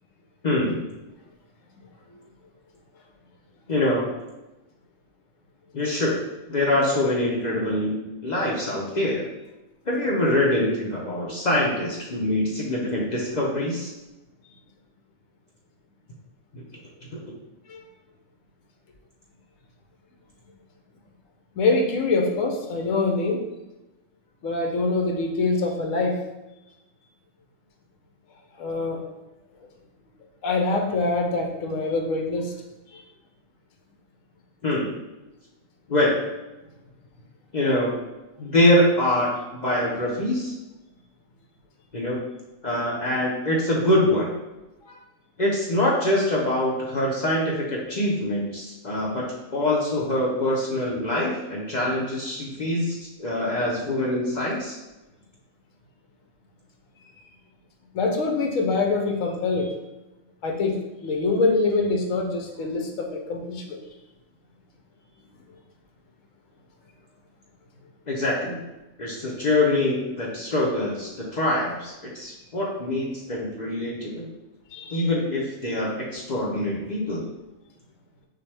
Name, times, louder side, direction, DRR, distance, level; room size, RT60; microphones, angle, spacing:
voice 1, 0.4-0.8 3.7-4.0 5.7-6.2 6.5-9.2 9.9-13.9 16.5-16.6 17.1-17.2 34.6-34.9 35.9-36.1 37.5-37.9 38.4-40.5 41.9-42.2 42.6-44.3 45.4-49.2 49.5-54.8 68.1-68.6 69.0-74.3 74.9-77.2, left 1 dB, 45° left, -4 dB, 0.6 m, -24 dB
voice 2, 21.5-23.4 24.4-26.2 28.6-29.0 30.4-32.5 32.9-33.0 44.9-45.0 57.9-59.7 60.4-63.6 74.7-75.1, left 3 dB, 65° left, 3 dB, 1.1 m, -24 dB
5.8 x 2.2 x 3.3 m, 1.0 s
omnidirectional pair, 1.5 m